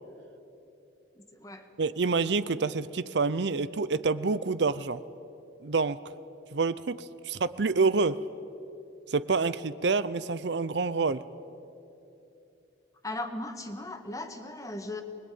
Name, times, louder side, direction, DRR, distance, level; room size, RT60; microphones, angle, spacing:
voice 1, 1.2-1.7 13.0-15.0, left 2 dB, 20° left, 6 dB, 1.8 m, -37 dB
voice 2, 1.8-5.0 5.6-6.0 6.5-8.2 9.1-11.2, right 4 dB, 65° right, 15 dB, 0.6 m, -27 dB
24.5 x 21.5 x 9.4 m, 2.8 s
head